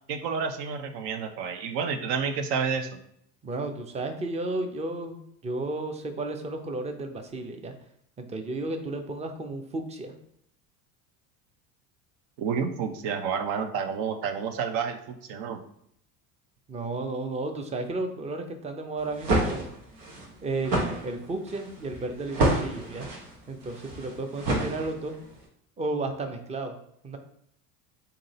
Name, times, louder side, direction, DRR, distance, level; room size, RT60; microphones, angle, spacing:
voice 1, 0.1-2.9 12.4-15.6, right 6 dB, 60° right, 7 dB, 0.8 m, -30 dB
voice 2, 3.4-7.7 8.2-10.2 16.7-19.7 20.4-23.1 23.5-25.2 25.8-26.7 27.0-27.2, right 2 dB, 15° right, 6 dB, 0.5 m, -33 dB
sound 1, 19.0-25.3, right 2 dB, 90° right, 1.2 m, -29 dB
3.7 x 2.8 x 4.1 m, 0.72 s
hypercardioid pair, 85°, 47 cm